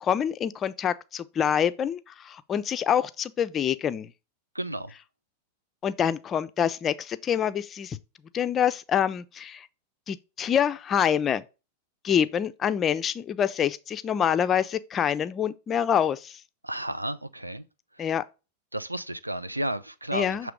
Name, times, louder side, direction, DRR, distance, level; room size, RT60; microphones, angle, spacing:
voice 1, 0.0-4.1 5.8-8.0 8.3-9.7 10.1-11.4 12.0-16.4 18.0-18.2 20.1-20.5, left 8 dB, 25° left, 0.4 m, -26 dB
voice 2, 4.5-4.9 16.6-17.6 17.9-18.0 18.7-20.5, right 1 dB, 85° right, 0.4 m, -32 dB
6.8 x 3.1 x 4.8 m
figure-of-eight pair, 90°, 0 cm